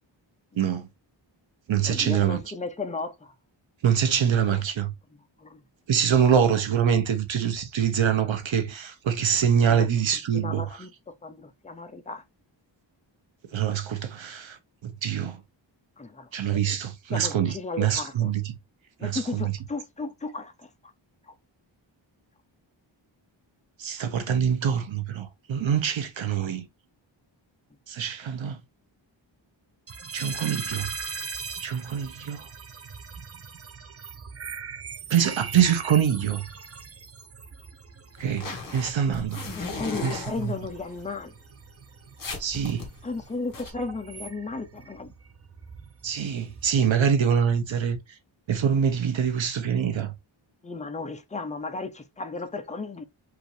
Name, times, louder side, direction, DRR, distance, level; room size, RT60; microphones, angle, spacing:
voice 1, 0.5-0.9 1.7-2.4 3.8-4.9 5.9-10.6 13.5-15.4 16.3-18.6 19.0-19.5 23.8-26.7 27.9-28.6 30.1-30.9 31.6-32.5 35.1-36.5 38.2-39.4 40.0-40.5 42.4-42.9 43.8-43.9 46.0-48.0 48.5-50.1, right 8 dB, 75° right, 0.9 m, -25 dB
voice 2, 1.9-3.3 4.5-4.6 5.4-5.6 9.6-9.9 10.3-12.2 16.0-16.8 17.1-18.3 19.0-20.9 21.3-21.4 24.0-24.1 39.5-41.4 43.0-45.1 50.6-53.0, left 3 dB, 15° left, 0.5 m, -35 dB
sound 1, 29.9-46.9, right 5 dB, 30° right, 0.6 m, -41 dB
sound 2, 38.2-40.9 41.5-41.6 41.8-41.9 42.2-43.7, left 3 dB, 45° left, 1.4 m, -36 dB
4.9 x 2.6 x 3.1 m
wide cardioid pair, 165°, 47 cm